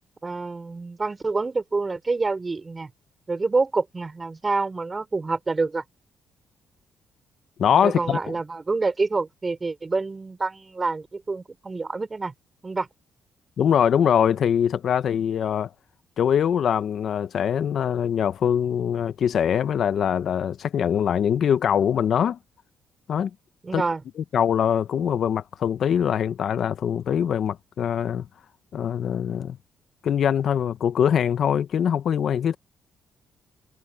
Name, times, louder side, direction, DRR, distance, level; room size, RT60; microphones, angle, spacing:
voice 1, 0.2-2.9 3.3-5.8 7.8-12.3 12.6-12.9 23.6-24.0, right 3 dB, 25° right, 4.8 m, -27 dB
voice 2, 7.6-8.2 13.6-15.7 16.2-22.4 23.1-23.3 23.7-23.8 24.3-28.3 28.7-29.6 30.0-32.6, left 8 dB, 60° left, 0.9 m, -23 dB
cardioid pair, 90°, 0 cm